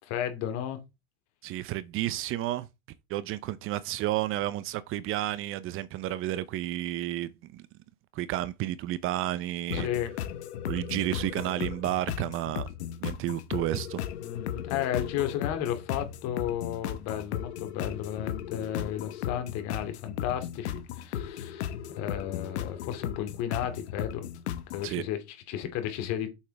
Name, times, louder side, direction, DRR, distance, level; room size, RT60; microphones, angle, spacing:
voice 1, 0.0-0.8 9.7-10.1 14.2-24.3 24.7-26.3, left 10 dB, 55° left, 2.5 m, -33 dB
voice 2, 1.4-2.7 3.1-7.6 8.1-9.9 10.7-12.7 13.0-14.0 24.8-25.0, right 14 dB, 40° right, 0.7 m, -31 dB
sound 1, 9.7-24.9, left 10 dB, 75° left, 1.2 m, -36 dB
8.4 x 7.3 x 3.4 m
supercardioid pair, 120°, 33 cm